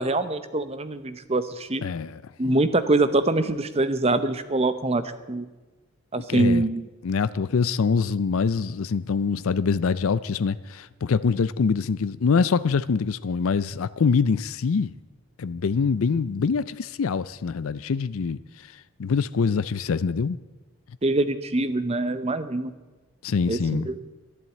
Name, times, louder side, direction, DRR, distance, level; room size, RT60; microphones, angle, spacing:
voice 1, 0.0-1.8 2.4-5.5 6.1-6.9 21.0-22.7 23.5-23.9, right 2 dB, 25° right, 0.7 m, -24 dB
voice 2, 1.8-2.2 6.3-6.6 7.0-14.9 15.4-18.4 19.0-20.4 23.2-23.9, left 5 dB, 65° left, 0.4 m, -24 dB
12.0 x 11.0 x 8.6 m
head